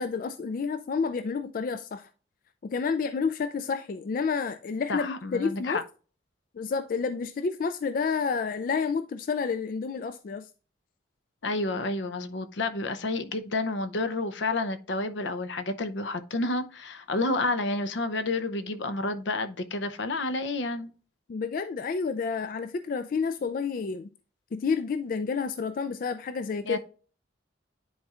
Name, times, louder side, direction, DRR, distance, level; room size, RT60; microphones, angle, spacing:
voice 1, 0.0-2.1 2.6-5.8 6.5-10.5 21.3-24.1 24.5-26.8, left 5 dB, 45° left, 0.3 m, -30 dB
voice 2, 4.9-5.8 11.4-20.9 26.6-26.8, left 2 dB, 75° left, 0.7 m, -30 dB
10.5 x 4.2 x 2.4 m
head